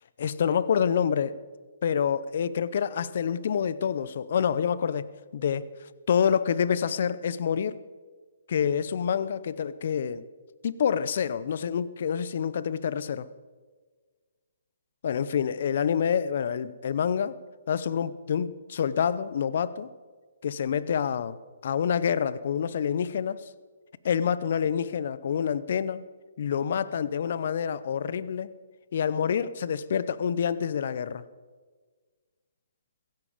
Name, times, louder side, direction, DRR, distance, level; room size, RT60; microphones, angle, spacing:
voice 1, 0.2-1.4 1.8-5.7 6.1-7.8 8.5-10.3 10.6-13.3 15.0-17.4 17.7-19.9 20.4-21.4 21.6-23.5 24.0-26.1 26.4-28.6 28.9-31.2, left 7 dB, 60° left, 0.7 m, -27 dB
16.5 x 16.0 x 5.0 m
hypercardioid pair, 140°, 0 cm